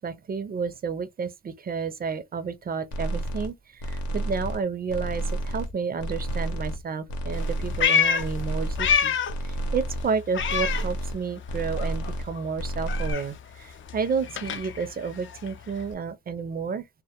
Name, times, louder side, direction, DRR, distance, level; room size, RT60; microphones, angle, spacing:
voice 1, 0.0-9.2 9.4-16.8, right 5 dB, 30° right, 0.4 m, -31 dB
sound 1, 2.9-3.5 3.8-4.6 4.9-5.7 6.0-6.8 7.1-7.9 8.2-9.0 9.3-10.0 10.4-11.2 11.5-12.3 12.6-13.1, right 1 dB, 70° left, 0.8 m, -30 dB
Meow, 7.3-9.5 9.8-11.5 11.8-15.9, left 7 dB, 45° left, 0.4 m, -28 dB
2.1 x 2.1 x 2.8 m
cardioid pair, 90°, 30 cm